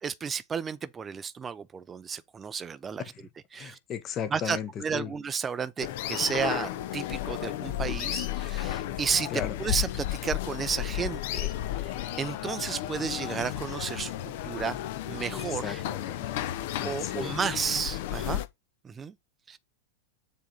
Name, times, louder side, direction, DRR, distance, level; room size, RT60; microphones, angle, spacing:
voice 1, 0.0-3.0 3.5-3.8 4.3-11.5 11.8-14.8 15.1-15.8 16.8-18.4 18.8-19.1 19.5-19.6, right 6 dB, 20° right, 0.5 m, -32 dB
voice 2, 3.6-5.1 9.3-9.5 15.3-16.3 16.8-17.3, left 8 dB, 30° left, 1.1 m, -36 dB
sound 1, 5.8-18.5, left 12 dB, 50° left, 0.8 m, -33 dB
7.2 x 3.8 x 5.1 m
figure-of-eight pair, 90°, 0 cm